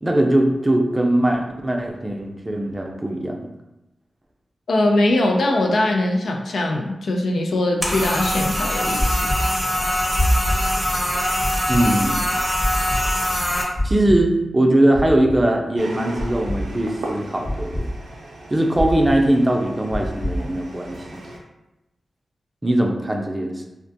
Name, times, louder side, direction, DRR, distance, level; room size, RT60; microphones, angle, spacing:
voice 1, 0.0-3.4 11.7-12.2 13.8-17.9 18.5-21.3 22.6-23.7, right 1 dB, 25° right, 2 dB, 0.4 m, -20 dB
voice 2, 4.7-9.2, left 1 dB, 80° left, 1 dB, 0.3 m, -21 dB
sound 1, 7.8-13.6, left 1 dB, 5° left, 0.7 m, -23 dB
sound 2, 9.0-9.4 10.2-10.6 11.4-11.8 12.6-13.0 13.7-14.2 14.9-15.3 16.2-16.6 17.4-17.8 18.8-19.2 19.9-20.3, left 1 dB, 50° left, 1.0 m, -24 dB
sound 3, 15.8-21.4, right 2 dB, 85° right, 0.4 m, -37 dB
2.4 x 2.2 x 2.7 m, 0.95 s
cardioid pair, 40°, 0 cm